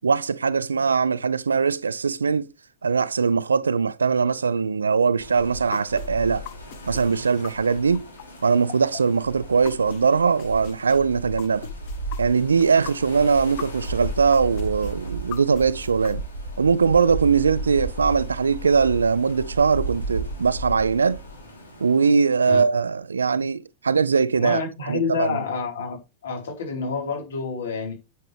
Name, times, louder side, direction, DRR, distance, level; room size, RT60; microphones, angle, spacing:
voice 1, 0.0-2.5 2.8-6.4 6.9-8.1 8.4-11.7 12.2-16.2 16.6-21.2 21.8-24.6 24.9-25.4, right 5 dB, 75° right, 0.5 m, -21 dB
sound 1, 5.2-22.1, right 2 dB, 80° left, 3.4 m, -35 dB
sound 2, 5.7-10.0 10.4-13.9 14.3-16.1, left 14 dB, 45° left, 1.0 m, -40 dB
voice 2, 24.4-26.0 26.2-27.9, left 5 dB, 65° left, 4.3 m, -28 dB
9.5 x 7.7 x 3.4 m
figure-of-eight pair, 90°, 0 cm